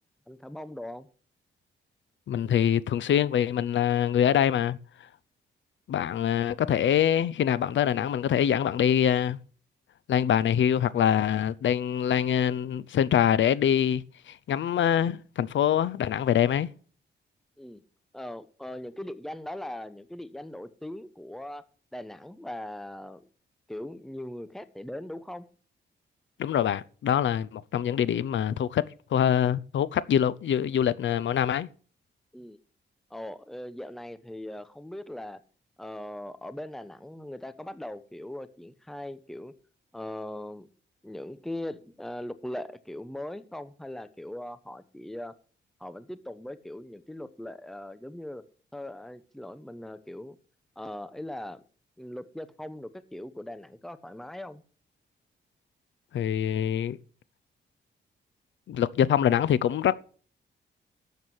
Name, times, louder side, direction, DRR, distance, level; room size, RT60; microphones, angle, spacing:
voice 1, 0.3-1.1 17.6-17.8 18.1-21.6 21.9-23.3 23.7-25.5 32.3-32.6 33.1-35.4 35.8-39.5 39.9-40.7 41.0-45.3 45.8-48.4 48.7-50.4 50.8-51.6 52.0-54.6, left 1 dB, ahead, 0.8 m, -40 dB
voice 2, 2.3-4.8 5.9-9.4 10.1-16.7 26.4-28.8 29.1-31.7 56.1-57.0 58.7-59.9, left 9 dB, 80° left, 0.7 m, -24 dB
12.0 x 7.4 x 6.2 m
cardioid pair, 95°, 19 cm